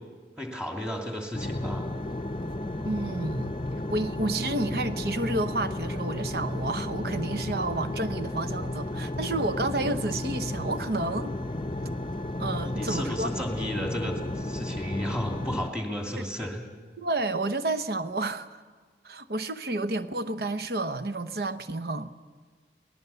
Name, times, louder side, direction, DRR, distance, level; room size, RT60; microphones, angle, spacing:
voice 1, 0.4-1.9 12.6-16.6, equal, 5° right, 2.6 m, -33 dB
sound 1, 1.3-15.7, left 1 dB, 30° left, 0.7 m, -33 dB
voice 2, 2.8-3.6 3.9-11.4 12.4-13.3 16.2-16.3 17.0-18.6 19.0-22.1, right 2 dB, 55° right, 0.9 m, -30 dB
24.5 x 18.5 x 7.0 m
head